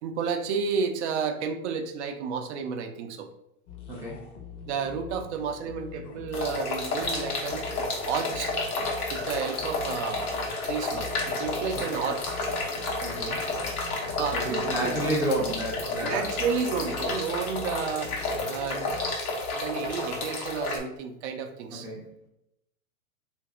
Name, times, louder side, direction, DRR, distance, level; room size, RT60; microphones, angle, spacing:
voice 1, 0.0-3.3 4.6-7.7 8.1-8.5 9.1-10.3 10.7-12.5 14.2-14.9 16.0-18.2 18.5-18.9 19.5-21.9, right 6 dB, 55° right, 6 dB, 0.6 m, -31 dB
sound 1, 3.7-19.1, left 6 dB, 55° left, 0.8 m, -44 dB
voice 2, 3.9-4.2 11.7-11.8 13.0-13.4 14.3-16.3 21.7-22.3, right 1 dB, 5° right, -5 dB, 0.5 m, -31 dB
sound 2, 6.3-20.8, left 2 dB, 85° left, 0.9 m, -31 dB
Domestic sounds home sounds, 11.0-11.1 11.3-12.1 12.6-12.9 13.2-13.7 14.3-14.4 14.8-15.5 15.9-16.0 16.3-17.3 17.5-17.7 17.9-18.6, left 5 dB, 35° left, 0.5 m, -48 dB
2.7 x 2.6 x 3.6 m, 0.80 s
hypercardioid pair, 110°, 43 cm